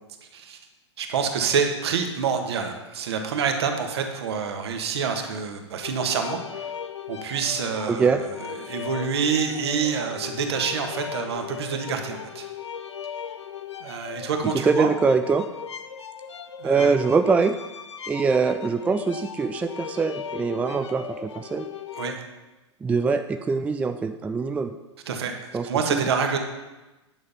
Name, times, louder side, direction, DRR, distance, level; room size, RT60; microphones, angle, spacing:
voice 1, 1.0-6.7 7.1-8.1 8.6-12.5 13.8-14.9 16.6-17.0 22.0-22.2 25.1-25.3 25.6-26.4, right 6 dB, 60° right, 4 dB, 1.5 m, -27 dB
sound 1, 5.8-22.1, left 8 dB, 70° left, 0.7 m, -37 dB
voice 2, 7.9-8.2 14.6-15.5 16.6-17.5 18.1-21.7 22.8-24.7 25.5-26.0, right 4 dB, 10° right, 8 dB, 0.4 m, -23 dB
9.7 x 6.5 x 5.6 m, 1.1 s
figure-of-eight pair, 100°, 15 cm